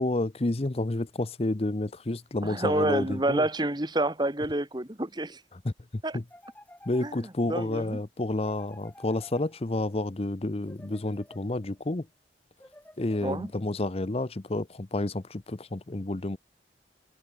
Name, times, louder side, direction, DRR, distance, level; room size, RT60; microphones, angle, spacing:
voice 1, 0.0-3.5 5.5-6.2 6.9-12.1 13.0-16.4, left 2 dB, 35° left, 0.7 m, -30 dB
voice 2, 2.4-5.4 6.0-6.2 7.0-7.2 7.5-8.0 13.2-13.5, right 1 dB, 25° right, 1.9 m, -28 dB
sound 1, 6.3-7.6 8.4-9.9 10.6-11.8 12.6-13.8, left 1 dB, 10° left, 5.1 m, -53 dB
head